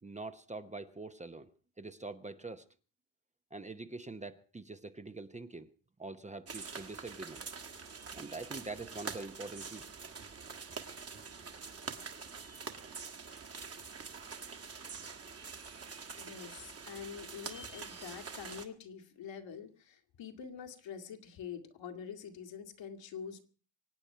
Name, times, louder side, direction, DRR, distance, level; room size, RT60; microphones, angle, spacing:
voice 1, 0.0-1.5 1.8-2.7 3.5-5.7 6.0-7.5 8.1-9.8, right 3 dB, 15° right, 0.8 m, -44 dB
sound 1, 6.5-18.6, right 5 dB, 30° right, 1.6 m, -45 dB
voice 2, 16.2-23.4, left 7 dB, 70° left, 2.1 m, -46 dB
24.5 x 8.9 x 5.6 m
cardioid pair, 100°, 45 cm